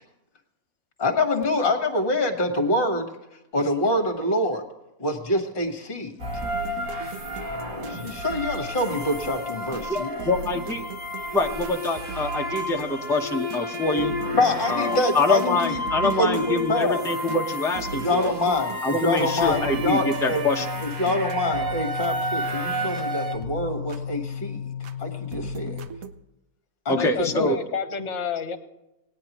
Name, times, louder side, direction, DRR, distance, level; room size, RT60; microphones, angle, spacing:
voice 1, 1.0-3.1 3.5-4.6 5.0-6.1 7.9-10.1 14.4-17.0 17.9-20.4 20.8-24.6 25.0-25.8 26.8-27.6, left 2 dB, 40° left, 4 dB, 1.6 m, -25 dB
sound 1, 6.2-23.4, equal, 35° right, 1.9 m, -31 dB
sound 2, 6.4-23.1 23.4-25.0 25.3-26.2, right 4 dB, 70° right, 1.2 m, -40 dB
voice 2, 9.9-10.9 11.3-14.2 14.7-18.3 18.8-20.7 26.9-27.6, left 2 dB, 5° left, 2 dB, 0.7 m, -25 dB
sound 3, 19.2-25.9, left 9 dB, 70° left, 1.0 m, -35 dB
voice 3, 26.9-28.6, left 6 dB, 55° left, 9 dB, 1.4 m, -29 dB
19.0 x 9.7 x 3.0 m, 0.92 s
omnidirectional pair, 1.5 m